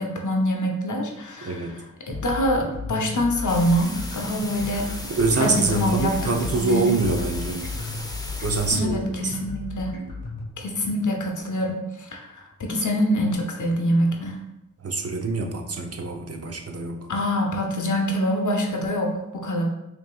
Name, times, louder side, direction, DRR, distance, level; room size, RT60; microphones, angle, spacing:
voice 1, 0.0-1.7 2.1-4.9 5.4-6.1 6.7-6.9 8.7-10.0 10.6-12.2 12.6-14.4 17.1-19.6, equal, 70° left, 1 dB, 0.8 m, -25 dB
voice 2, 1.4-1.8 5.1-7.7 8.4-9.3 14.8-17.1, right 3 dB, 50° right, 3 dB, 0.6 m, -25 dB
sound 1, 2.1-10.5, left 3 dB, 85° left, 1.1 m, -34 dB
sound 2, 3.5-8.8, left 1 dB, 10° left, 0.6 m, -37 dB
5.1 x 2.8 x 2.3 m, 0.92 s
cardioid pair, 50°, 31 cm